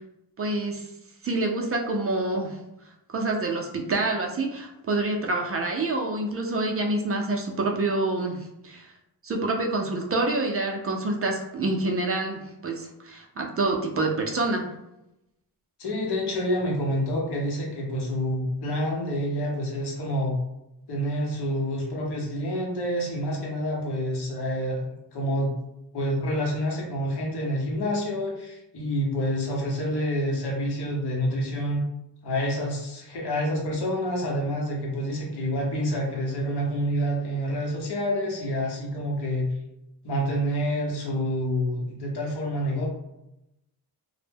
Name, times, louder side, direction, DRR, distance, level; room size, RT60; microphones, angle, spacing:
voice 1, 0.4-0.9 1.2-2.6 3.1-8.9 9.2-14.7, right 2 dB, 35° right, 1 dB, 0.4 m, -27 dB
voice 2, 15.8-20.4 20.9-25.5 25.9-31.8 32.2-39.5 40.0-42.8, equal, 75° left, -2 dB, 0.9 m, -28 dB
2.1 x 2.1 x 3.3 m, 0.89 s
cardioid pair, 80°, 40 cm